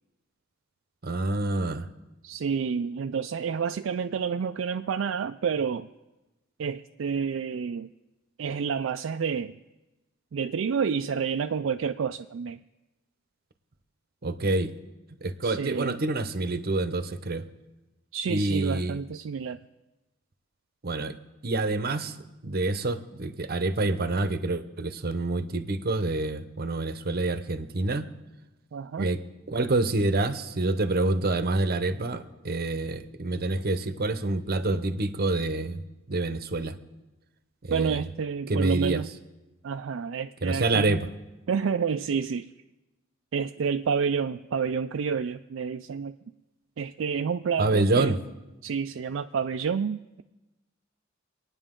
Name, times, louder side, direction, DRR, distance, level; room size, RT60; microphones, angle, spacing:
voice 1, 1.0-1.9 14.2-14.7 15.2-17.4 18.3-19.0 20.8-21.1 21.4-22.2 22.4-28.0 29.0-29.2 29.5-35.8 36.1-36.7 37.6-38.0 38.5-39.0 40.4-41.1 47.6-48.2, right 2 dB, 50° right, 11 dB, 0.8 m, -27 dB
voice 2, 2.2-5.9 6.6-7.9 8.4-9.5 10.3-12.6 15.4-16.0 18.1-19.6 28.7-29.1 37.7-39.1 39.6-41.0 41.5-42.5 43.3-46.1 46.8-48.2 48.6-50.2, right 6 dB, 65° right, 7 dB, 0.4 m, -29 dB
25.5 x 9.8 x 3.7 m, 1.1 s
head